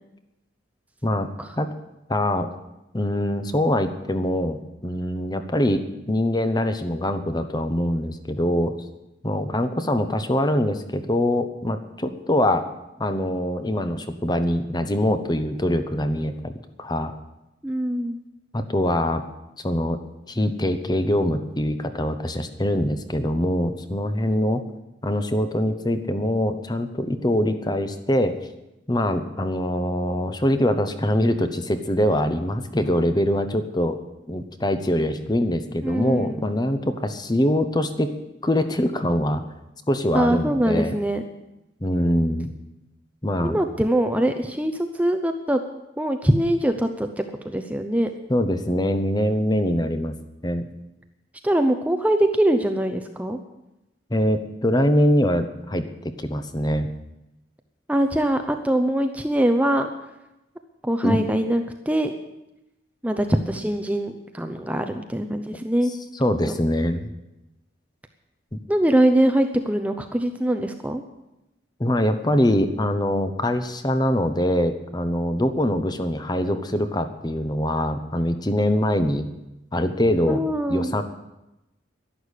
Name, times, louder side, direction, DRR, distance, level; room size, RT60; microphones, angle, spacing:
voice 1, 2.1-2.5 2.9-8.7 9.2-12.6 13.0-16.5 16.8-17.1 18.5-19.2 19.6-20.0 20.3-24.6 25.0-28.3 28.9-34.0 34.3-38.1 38.4-39.4 39.9-40.9 41.8-42.5 43.2-43.6 48.3-50.2 50.4-50.7 54.1-56.9 61.0-61.2 66.1-67.1 68.5-68.6 71.8-79.3 79.7-80.4 80.7-81.0, left 1 dB, 20° left, 9 dB, 0.9 m, -23 dB
voice 2, 17.6-18.2 35.8-36.5 40.1-41.2 43.4-45.6 46.0-48.1 51.4-53.4 57.9-59.9 60.8-62.1 63.0-65.9 66.5-66.6 68.7-71.0 80.3-81.0, right 1 dB, 5° right, 6 dB, 0.7 m, -23 dB
11.5 x 11.5 x 8.4 m, 0.94 s
head